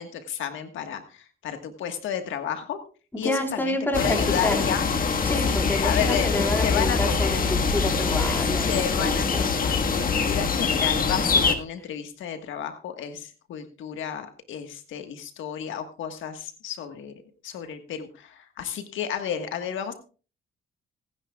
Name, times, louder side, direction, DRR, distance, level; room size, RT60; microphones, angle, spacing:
voice 1, 0.0-2.8 3.2-4.9 5.4-6.3 6.6-7.2 8.7-17.1 17.4-19.9, left 8 dB, 80° left, 7 dB, 1.5 m, -32 dB
voice 2, 3.2-4.7 5.3-8.7 9.0-9.4, left 1 dB, 10° left, 3 dB, 3.7 m, -28 dB
sound 1, 3.9-11.5, left 5 dB, 45° left, 1.6 m, -24 dB
25.5 x 10.0 x 2.3 m, 0.36 s
cardioid pair, 90°, 20 cm